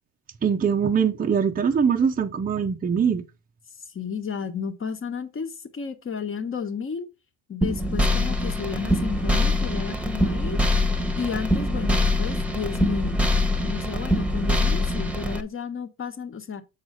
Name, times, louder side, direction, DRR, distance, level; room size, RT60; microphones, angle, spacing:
voice 1, 0.4-3.2, right 6 dB, 20° right, 0.7 m, -22 dB
voice 2, 3.9-7.1 7.5-10.6 11.2-13.2 13.6-16.6, left 6 dB, 30° left, 1.3 m, -32 dB
sound 1, 7.6-15.4, left 1 dB, 5° right, 1.2 m, -23 dB
7.3 x 4.8 x 4.3 m
supercardioid pair, 90°, 41 cm